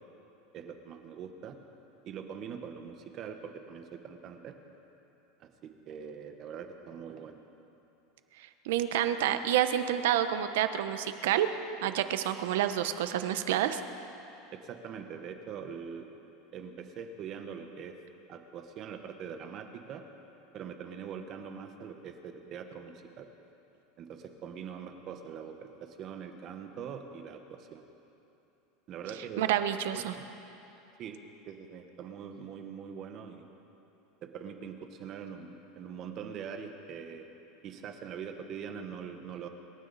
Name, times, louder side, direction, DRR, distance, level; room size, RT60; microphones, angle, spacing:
voice 1, 0.5-1.6 2.0-4.5 5.4-7.4 14.5-16.1 16.5-17.9 18.3-20.0 20.5-23.3 24.0-27.8 28.9-29.5 29.9-30.0 31.0-31.2 31.5-33.5 34.2-37.3 37.6-39.5, right 7 dB, 35° right, 6 dB, 1.1 m, -43 dB
voice 2, 8.4-11.5 11.8-13.8 29.4-30.2, right 11 dB, 80° right, 10 dB, 0.9 m, -28 dB
25.5 x 13.0 x 4.1 m, 2.9 s
supercardioid pair, 165°, 0 cm